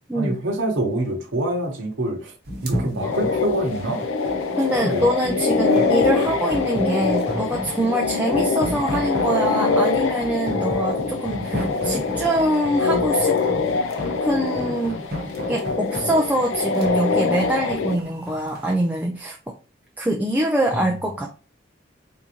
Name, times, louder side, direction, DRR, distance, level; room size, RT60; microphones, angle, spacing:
voice 1, 0.1-2.3 2.6-4.0 4.8-5.1 20.7-20.9, right 1 dB, 80° right, 1 dB, 0.9 m, -25 dB
sound 1, 2.5-18.7, equal, 50° right, 0.9 m, -33 dB
sound 2, 3.0-18.0, left 4 dB, 85° left, 0.4 m, -24 dB
voice 2, 4.6-13.4 14.2-15.0 15.5-19.4 20.0-21.3, right 1 dB, 10° right, 0 dB, 0.3 m, -24 dB
3.6 x 2.6 x 2.8 m, 0.35 s
head